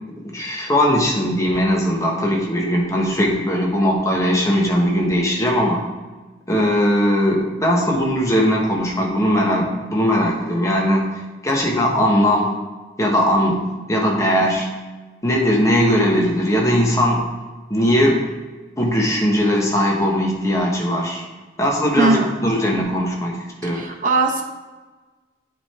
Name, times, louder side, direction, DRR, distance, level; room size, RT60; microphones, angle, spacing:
voice 1, 0.2-5.8 6.5-11.1 11.4-12.5 13.0-14.7 15.2-17.3 17.7-18.2 18.8-21.2 21.6-23.3 23.6-23.8, equal, 15° left, -2 dB, 1.3 m, -19 dB
voice 2, 22.0-22.3 23.6-24.4, right 3 dB, 45° right, 3 dB, 0.9 m, -20 dB
9.7 x 3.7 x 4.3 m, 1.3 s
head